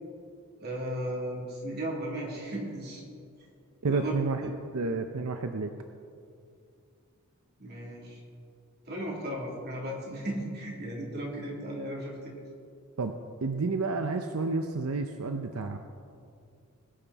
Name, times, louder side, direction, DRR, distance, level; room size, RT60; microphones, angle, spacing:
voice 1, 0.6-3.0 3.9-4.1 7.6-8.2 8.9-12.3, right 1 dB, 50° right, -3 dB, 3.0 m, -35 dB
voice 2, 3.8-5.7 13.0-13.1 13.4-15.8, right 3 dB, 70° right, 6 dB, 0.6 m, -30 dB
21.5 x 8.9 x 4.1 m, 2.4 s
head